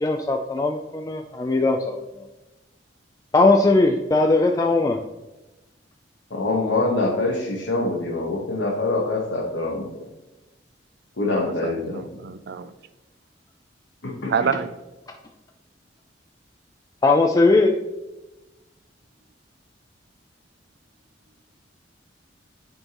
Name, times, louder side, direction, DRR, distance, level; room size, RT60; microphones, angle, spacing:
voice 1, 0.0-2.0 3.3-5.0 17.0-17.7, left 3 dB, 20° left, 3 dB, 0.4 m, -19 dB
voice 2, 6.3-10.1 11.2-12.0 14.0-14.5, left 2 dB, 85° left, -4 dB, 1.2 m, -25 dB
voice 3, 11.6-12.7 14.3-14.7, right 6 dB, 60° right, 13 dB, 0.4 m, -27 dB
9.5 x 4.4 x 3.0 m, 1.0 s
head